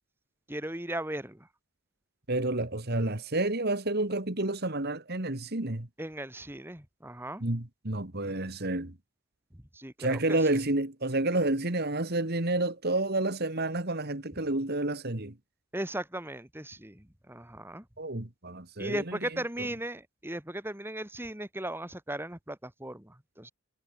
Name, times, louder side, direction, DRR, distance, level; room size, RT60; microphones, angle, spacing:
voice 1, 0.5-1.5 6.0-7.4 9.7-10.4 15.7-17.8 18.8-23.5, right 1 dB, 10° right, 2.4 m, -37 dB
voice 2, 2.3-5.9 7.4-9.0 10.0-15.4 18.0-19.3 19.6-19.7, right 2 dB, 45° right, 2.1 m, -30 dB
head